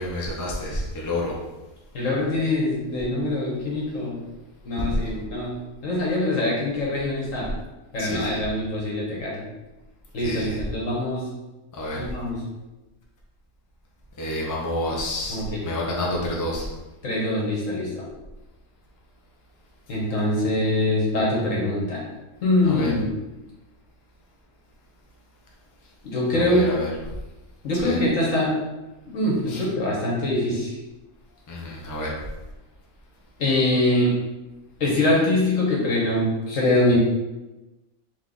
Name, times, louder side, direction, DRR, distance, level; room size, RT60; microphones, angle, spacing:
voice 1, 0.0-1.4 8.0-8.4 10.2-10.6 11.7-12.0 14.2-16.7 22.6-22.9 26.3-26.9 27.8-28.0 29.5-29.7 31.5-32.1, left 1 dB, 25° left, -3 dB, 0.4 m, -29 dB
voice 2, 1.9-4.2 4.6-7.5 7.9-9.4 10.1-11.3 11.9-12.4 15.3-15.6 17.0-18.0 19.9-22.0 22.4-23.1 26.0-26.6 27.6-28.5 29.1-30.7 33.4-34.1 34.8-37.0, left 1 dB, 65° left, -4 dB, 1.6 m, -23 dB
3.5 x 3.2 x 3.9 m, 1.1 s
omnidirectional pair, 1.5 m